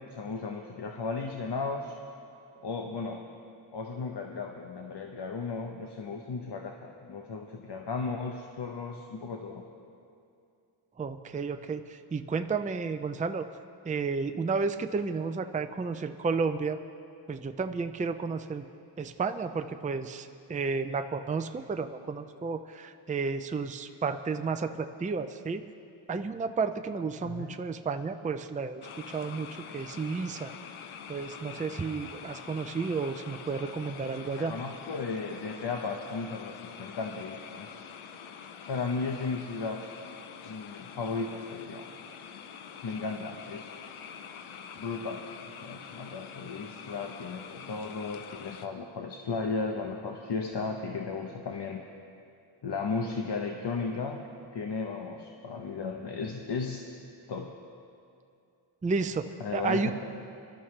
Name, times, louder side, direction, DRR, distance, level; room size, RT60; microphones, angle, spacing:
voice 1, 0.0-2.0 2.6-3.3 3.7-9.7 27.2-27.6 34.4-37.8 38.7-39.9 40.4-41.8 42.8-43.8 44.7-51.8 52.6-54.3 54.5-56.8 57.3-57.6 59.4-59.9, left 4 dB, 60° left, 3 dB, 1.0 m, -35 dB
voice 2, 11.0-13.4 13.9-16.8 17.3-18.7 19.0-25.6 26.1-29.5 29.7-30.5 31.1-34.5 58.8-59.3 59.5-59.9, right 4 dB, 15° right, 8 dB, 0.4 m, -32 dB
sound 1, 28.8-48.7, left 7 dB, 90° left, 0.8 m, -45 dB
23.0 x 12.5 x 3.3 m, 2.4 s
wide cardioid pair, 90°, 48 cm